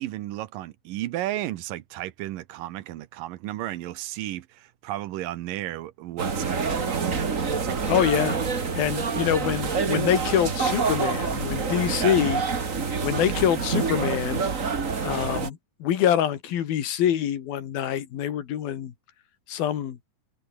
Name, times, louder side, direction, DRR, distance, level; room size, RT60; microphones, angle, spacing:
voice 1, 0.0-8.0 12.0-12.2, right 14 dB, 75° right, 2.6 m, -34 dB
sound 1, 6.2-15.5, right 5 dB, 30° right, 1.6 m, -27 dB
voice 2, 7.9-8.4 8.8-12.4 13.0-14.4 15.0-18.9 19.5-20.0, left 10 dB, 90° left, 4.0 m, -25 dB
omnidirectional pair, 4.1 m